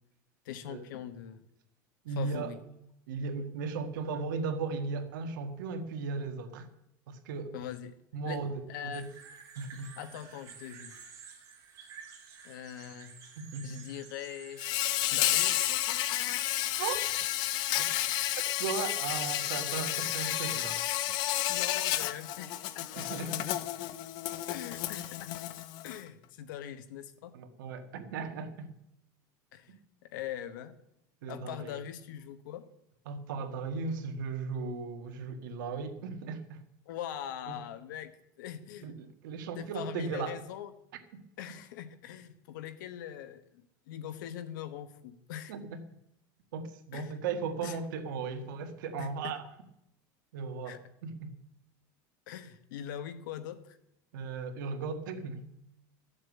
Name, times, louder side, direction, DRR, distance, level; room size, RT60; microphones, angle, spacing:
voice 1, 0.4-1.5 2.2-2.6 7.5-7.9 8.2-8.4 8.7-9.0 10.0-10.9 12.4-13.2 13.6-14.6 15.1-15.7 21.5-22.9 24.5-25.3 25.8-27.3 29.5-29.7 30.0-30.8 31.3-32.6 36.9-38.1 38.4-38.9 39.6-40.7 41.4-45.5 46.9-47.1 47.6-47.8 49.0-49.3 50.6-50.8 52.3-53.8, left 10 dB, 80° left, 10 dB, 1.3 m, -42 dB
voice 2, 2.0-2.6 3.1-6.7 7.1-7.6 8.1-9.1 9.6-9.9 13.4-13.9 16.8-17.0 17.8-17.9 18.6-20.8 22.9-23.6 27.3-28.7 29.7-29.8 31.2-31.8 33.1-36.6 37.5-37.6 38.8-40.4 45.5-45.8 46.5-49.4 50.3-51.4 54.1-55.5, right 5 dB, 90° right, 7 dB, 1.8 m, -37 dB
sound 1, 8.9-14.7, right 6 dB, 30° right, 3.2 m, -51 dB
Insect, 14.6-26.0, left 14 dB, 45° left, 0.7 m, -31 dB
13.0 x 7.4 x 8.4 m, 0.81 s
supercardioid pair, 160°, 10 cm